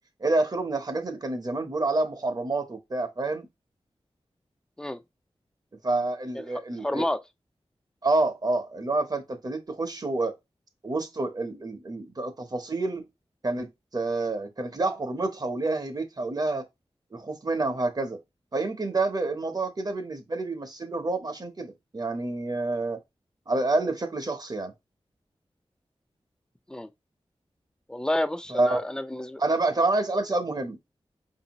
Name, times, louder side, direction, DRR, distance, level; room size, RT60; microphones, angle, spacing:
voice 1, 0.2-3.5 5.8-7.1 8.0-10.3 10.8-13.0 13.4-13.7 13.9-16.7 17.1-18.2 18.5-23.0 23.5-24.7 28.5-28.8 29.4-30.8, right 2 dB, 40° right, 0.8 m, -28 dB
voice 2, 6.8-7.2 26.7-26.9 27.9-29.4, left 1 dB, 5° left, 0.4 m, -29 dB
4.9 x 2.7 x 2.9 m
wide cardioid pair, 95°, 10 cm